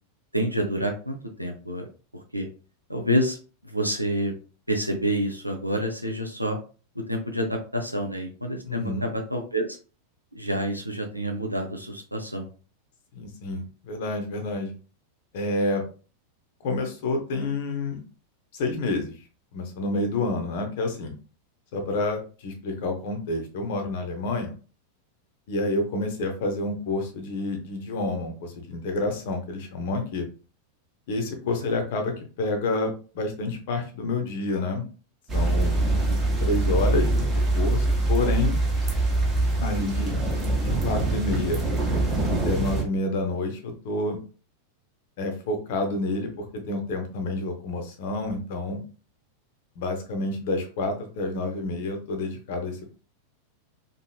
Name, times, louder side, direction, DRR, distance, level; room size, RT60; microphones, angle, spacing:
voice 1, 0.3-1.9 2.3-2.5 2.9-3.4 3.6-4.3 4.7-6.6 7.0-9.8 10.3-12.5, equal, 90° right, 3 dB, 0.4 m, -28 dB
voice 2, 8.7-9.1 13.1-14.7 15.3-15.8 16.6-18.0 18.5-19.1 19.5-21.1 21.7-24.5 25.5-30.3 31.1-34.8 35.3-35.8 36.4-38.6 39.6-40.1 40.6-41.6 42.2-44.2 45.2-48.8 49.8-53.0, left 2 dB, 50° left, 5 dB, 0.6 m, -29 dB
sound 1, 35.3-42.8, right 2 dB, 25° right, 0.9 m, -24 dB
3.0 x 2.6 x 2.3 m, 0.36 s
figure-of-eight pair, 90°, 0 cm